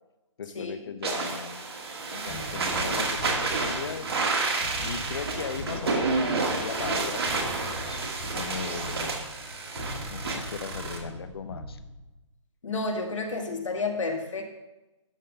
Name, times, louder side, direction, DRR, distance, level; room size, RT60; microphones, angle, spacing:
voice 1, 0.4-1.8 2.1-4.1 4.8-9.2 10.1-11.8, left 6 dB, 50° left, 10 dB, 0.7 m, -38 dB
sound 1, 1.0-11.0, right 3 dB, 50° right, 1.6 m, -30 dB
sound 2, 2.3-12.2, left 1 dB, 5° left, 0.3 m, -41 dB
voice 2, 12.6-14.4, left 3 dB, 75° left, 4 dB, 1.7 m, -30 dB
11.0 x 3.8 x 6.3 m, 1.0 s
hypercardioid pair, 170°, 16 cm